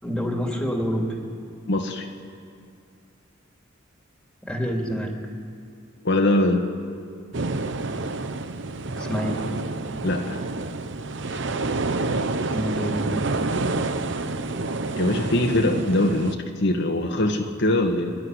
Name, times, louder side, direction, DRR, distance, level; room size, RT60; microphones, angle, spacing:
voice 1, 0.0-1.1 4.4-5.2 8.9-9.4 12.5-13.1, equal, 5° left, 1 dB, 2.8 m, -27 dB
voice 2, 1.7-2.0 6.0-6.6 10.0-10.3 15.0-18.2, left 1 dB, 60° left, 2 dB, 1.6 m, -22 dB
sound 1, 7.3-16.3, right 3 dB, 65° right, 0.9 m, -28 dB
27.0 x 12.0 x 9.8 m, 2.4 s
head